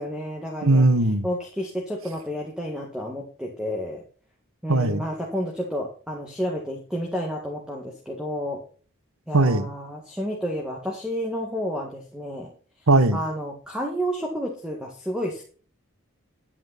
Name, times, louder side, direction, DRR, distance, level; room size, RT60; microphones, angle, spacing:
voice 1, 0.0-0.9 1.2-4.0 4.6-8.6 9.3-12.5 13.1-15.4, equal, 5° right, 1.8 m, -30 dB
voice 2, 0.6-1.2 4.7-5.0 9.3-9.7 12.9-13.2, right 2 dB, 80° right, 1.3 m, -19 dB
11.0 x 8.6 x 4.2 m
head